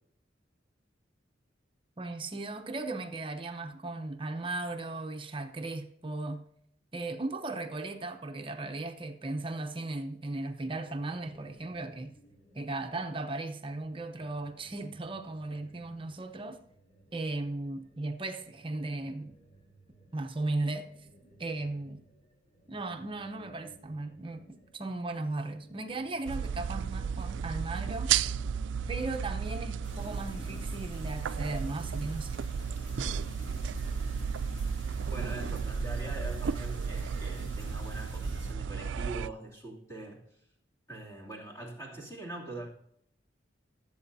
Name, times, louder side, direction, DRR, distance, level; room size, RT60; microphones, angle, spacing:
voice 1, 2.0-6.5 6.9-12.1 12.5-16.6 17.1-19.3 20.1-20.9 21.4-22.0 22.7-28.2 28.9-32.4, right 2 dB, 30° right, 0.8 m, -36 dB
sound 1, 10.5-29.9, right 1 dB, 40° left, 3.5 m, -60 dB
sound 2, 26.3-39.3, right 7 dB, 75° right, 0.3 m, -34 dB
sound 3, 29.8-38.5, right 1 dB, 90° left, 2.1 m, -43 dB
voice 2, 35.1-40.3 40.9-42.7, right 2 dB, 20° left, 2.8 m, -43 dB
19.0 x 8.0 x 2.7 m
head